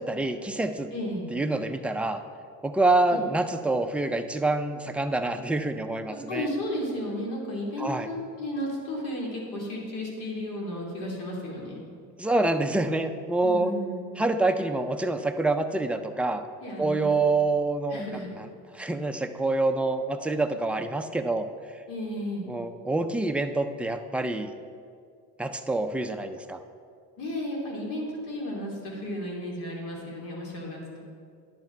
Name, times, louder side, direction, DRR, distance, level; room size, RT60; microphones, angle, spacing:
voice 1, 0.0-0.9 1.3-2.2 2.6-6.5 7.8-8.1 12.2-13.7 14.2-16.5 16.8-18.0 18.4-18.5 18.7-21.5 22.5-24.5 25.4-26.6, right 2 dB, 5° right, 6 dB, 0.3 m, -26 dB
voice 2, 0.9-1.3 3.1-3.2 6.1-11.8 13.4-14.2 16.6-17.1 17.9-18.3 21.9-22.5 27.2-31.1, left 1 dB, 75° left, -2 dB, 2.9 m, -33 dB
10.5 x 8.1 x 4.5 m, 2.2 s
cardioid pair, 135°, 32 cm